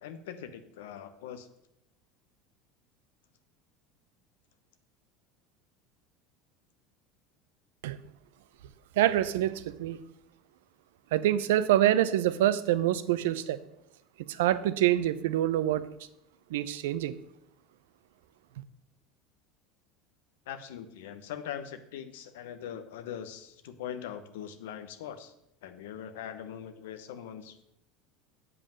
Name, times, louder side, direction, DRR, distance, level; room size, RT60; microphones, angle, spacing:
voice 1, 0.0-1.5 20.5-25.3 25.6-27.6, left 9 dB, 75° left, 9 dB, 1.0 m, -41 dB
voice 2, 9.0-10.0 11.1-13.6 14.3-15.8 16.5-17.1, right 13 dB, 75° right, 14 dB, 0.6 m, -26 dB
8.3 x 5.3 x 7.4 m, 0.80 s
hypercardioid pair, 80°, 0 cm